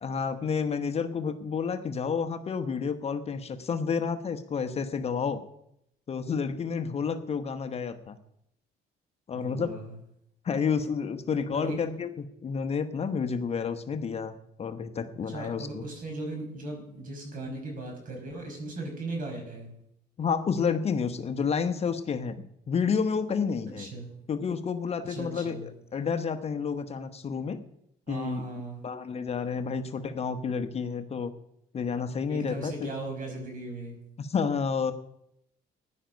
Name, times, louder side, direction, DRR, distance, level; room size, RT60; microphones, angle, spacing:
voice 1, 0.0-5.4 6.1-8.2 9.3-9.8 10.4-14.3 14.6-15.8 20.2-22.4 22.7-23.9 24.3-27.6 28.1-28.4 28.8-31.3 31.7-32.9 34.2-34.9, left 6 dB, 40° left, 8 dB, 1.1 m, -30 dB
voice 2, 9.3-9.9 11.5-11.7 15.3-19.7 23.8-24.1 25.0-25.7 28.1-28.8 32.3-34.0, right 2 dB, 55° right, 2 dB, 5.6 m, -37 dB
15.5 x 10.5 x 5.2 m, 0.77 s
cardioid pair, 110°, 17 cm